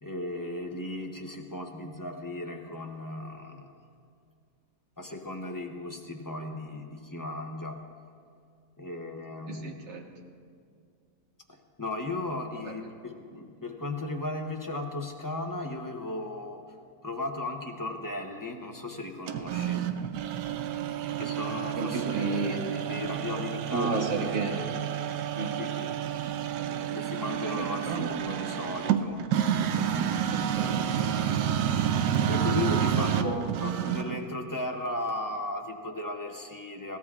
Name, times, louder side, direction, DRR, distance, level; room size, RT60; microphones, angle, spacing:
voice 1, 0.0-3.7 5.0-7.9 8.8-9.7 11.5-16.6 17.0-19.9 21.2-24.7 25.6-26.0 26.7-29.2 32.3-37.0, left 2 dB, 20° left, 2 dB, 0.5 m, -36 dB
voice 2, 9.5-10.1 12.6-12.7 21.8-22.6 23.7-24.7 25.3-25.6 27.6-28.1 30.3-30.9 33.2-33.4, right 3 dB, 45° right, 2 dB, 1.4 m, -32 dB
sound 1, 19.3-34.3, right 9 dB, 85° right, 1.2 m, -29 dB
21.5 x 17.0 x 2.4 m, 2.2 s
omnidirectional pair, 1.7 m